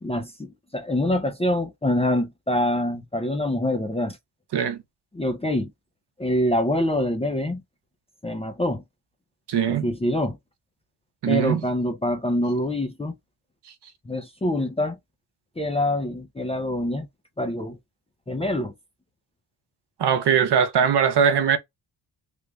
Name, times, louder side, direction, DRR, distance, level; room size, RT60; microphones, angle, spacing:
voice 1, 0.0-4.2 5.1-5.7 6.2-7.6 8.2-8.8 9.7-10.4 11.3-13.1 14.1-15.0 15.6-17.1 17.4-17.8 18.3-18.7, left 1 dB, 15° left, 0.5 m, -25 dB
voice 2, 4.5-4.8 9.5-9.9 11.2-11.6 20.0-21.6, right 7 dB, 60° right, 0.9 m, -21 dB
3.5 x 2.4 x 3.1 m
cardioid pair, 115°, 47 cm